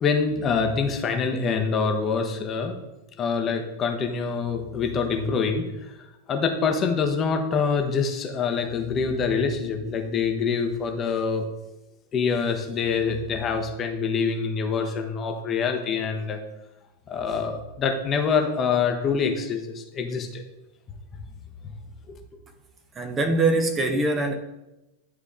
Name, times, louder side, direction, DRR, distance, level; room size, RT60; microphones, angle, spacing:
voice 1, 0.0-2.8 3.2-5.6 6.3-11.5 12.1-16.4 17.1-20.4 22.1-22.2, left 5 dB, 25° left, 0.9 m, -25 dB
voice 2, 23.0-24.3, right 2 dB, 20° right, 0.8 m, -23 dB
10.5 x 3.6 x 3.6 m
figure-of-eight pair, 90°, 0 cm